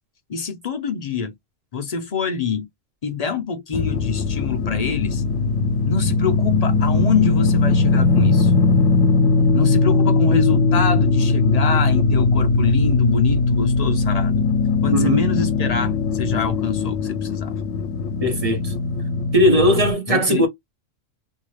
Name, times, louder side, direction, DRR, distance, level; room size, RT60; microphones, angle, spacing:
voice 1, 0.3-1.3 1.7-2.7 3.0-5.2 5.9-8.5 9.5-14.4 14.8-17.5 20.1-20.4, left 5 dB, 50° left, 0.5 m, -25 dB
sound 1, 3.7-19.9, left 4 dB, 80° left, 0.9 m, -19 dB
voice 2, 14.9-15.3 18.2-18.7 19.3-20.5, equal, 40° right, 0.5 m, -18 dB
2.7 x 2.3 x 3.1 m
omnidirectional pair, 1.4 m